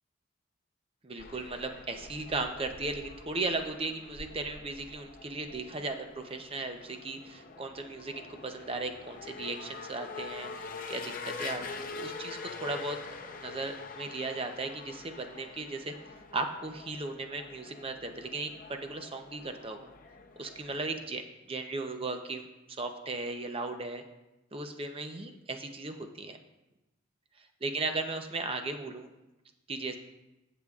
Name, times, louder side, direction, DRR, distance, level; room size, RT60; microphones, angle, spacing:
voice 1, 1.0-19.9 20.4-24.0 24.5-26.4 27.4-29.1 29.7-30.0, right 3 dB, 30° right, 5 dB, 0.7 m, -37 dB
sound 1, 1.2-21.1, left 4 dB, 45° left, 0.7 m, -45 dB
15.5 x 6.8 x 2.4 m, 0.99 s
head